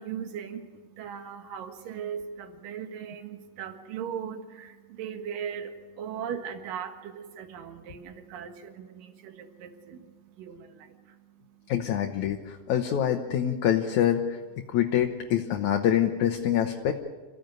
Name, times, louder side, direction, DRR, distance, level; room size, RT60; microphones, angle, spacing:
voice 1, 0.0-10.0 10.4-11.0, right 8 dB, 80° right, 7 dB, 3.2 m, -38 dB
voice 2, 11.7-14.2 14.7-16.9, left 10 dB, 70° left, 4 dB, 2.3 m, -25 dB
27.5 x 15.5 x 9.2 m, 1.4 s
omnidirectional pair, 3.9 m